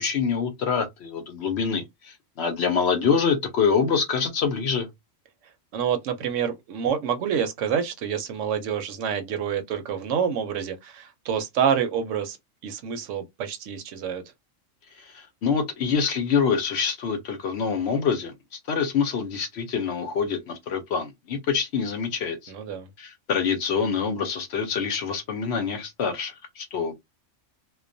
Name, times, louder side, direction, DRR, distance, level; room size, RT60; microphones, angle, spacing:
voice 1, 0.0-4.9 15.0-22.5 23.0-27.0, left 6 dB, 65° left, 0.7 m, -26 dB
voice 2, 5.7-12.4 12.6-14.2 22.5-22.9, right 8 dB, 70° right, 0.9 m, -27 dB
2.3 x 2.2 x 2.5 m
omnidirectional pair, 1.4 m